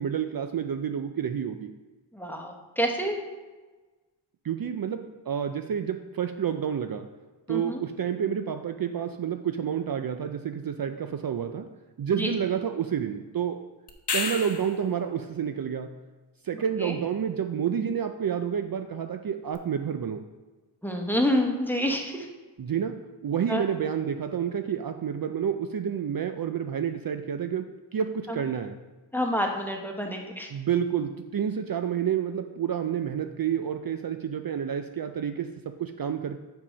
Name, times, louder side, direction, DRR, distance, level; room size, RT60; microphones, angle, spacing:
voice 1, 0.0-1.7 4.4-7.1 7.5-11.7 12.0-13.6 14.1-15.9 16.4-20.2 22.6-28.8 30.5-36.4, right 8 dB, 50° right, 7 dB, 0.5 m, -29 dB
voice 2, 2.1-3.2 7.5-7.8 12.2-12.3 16.8-17.0 20.8-22.3 23.5-23.7 28.3-28.4 29.1-30.5, equal, 5° left, 2 dB, 1.1 m, -28 dB
sound 1, 13.9-14.9 19.5-19.6, left 4 dB, 60° left, 0.9 m, -30 dB
5.6 x 4.8 x 5.1 m, 1.2 s
cardioid pair, 45°, 45 cm